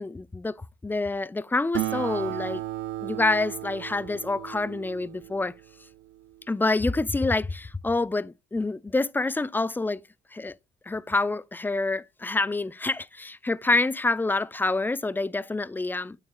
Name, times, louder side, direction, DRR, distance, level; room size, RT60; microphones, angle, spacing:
voice 1, 0.0-2.6 3.0-5.5 6.5-10.0 10.3-10.5 10.9-16.2, left 3 dB, 10° left, 0.3 m, -27 dB
Acoustic guitar, 1.7-6.6, right 15 dB, 70° right, 0.4 m, -35 dB
8.4 x 8.0 x 2.3 m
cardioid pair, 90°, 20 cm